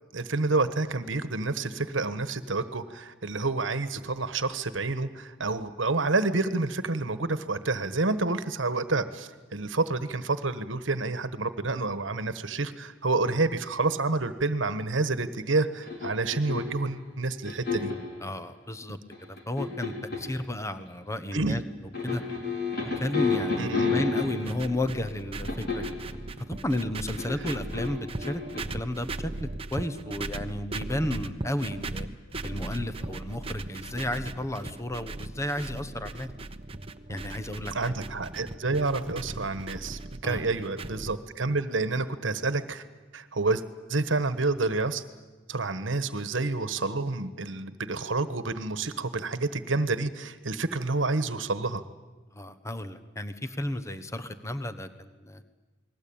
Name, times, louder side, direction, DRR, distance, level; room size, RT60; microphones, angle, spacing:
voice 1, 0.1-17.9 21.3-21.6 23.6-23.9 37.7-42.8 43.1-43.6 43.9-45.0 45.5-51.8, right 3 dB, 75° right, 12 dB, 1.3 m, -29 dB
sound 1, 15.8-16.9 17.5-18.1 19.1-20.4 21.9-24.7 25.5-26.0 27.2-28.6, left 4 dB, 55° left, 4.8 m, -30 dB
voice 2, 18.2-19.0 19.3-21.6 22.0-22.2 22.8-25.9 26.5-28.4 28.7-32.1 32.4-36.3 37.1-37.9 40.2-40.5 52.3-55.4, left 1 dB, 15° left, 10 dB, 1.2 m, -33 dB
sound 2, 24.4-41.2, right 2 dB, 30° right, 1.0 m, -38 dB
29.0 x 20.5 x 8.8 m, 1.3 s
head